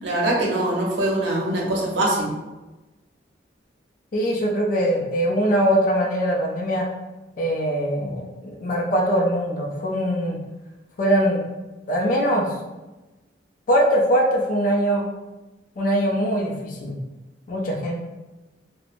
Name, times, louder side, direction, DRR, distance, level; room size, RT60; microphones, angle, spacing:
voice 1, 0.0-2.3, right 1 dB, 80° right, -3 dB, 0.7 m, -23 dB
voice 2, 4.1-6.9 7.4-10.4 11.0-11.4 11.9-12.5 13.7-15.1 15.8-17.0 17.5-18.0, equal, 50° left, -1 dB, 0.4 m, -22 dB
3.0 x 2.0 x 2.5 m, 1.1 s
head